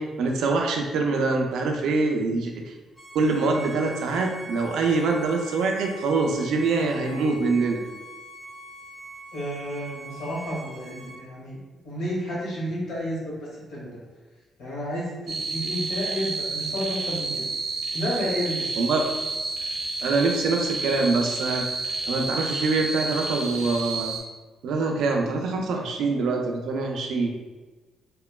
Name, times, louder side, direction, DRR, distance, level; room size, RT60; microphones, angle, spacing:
voice 1, 0.0-2.7 3.1-7.8 18.8-19.0 20.0-21.7 22.1-24.1 24.6-27.5, right 3 dB, 80° right, 2 dB, 0.4 m, -24 dB
Bowed string instrument, 2.9-11.2, right 1 dB, 10° left, 0.7 m, -42 dB
voice 2, 9.3-11.6 11.8-14.0 14.6-17.4 17.9-18.9, equal, 90° left, -6 dB, 1.0 m, -31 dB
sound 1, 15.3-24.2, right 3 dB, 55° right, 0.7 m, -30 dB
2.9 x 2.1 x 2.2 m, 1.3 s
cardioid pair, 85°, 0 cm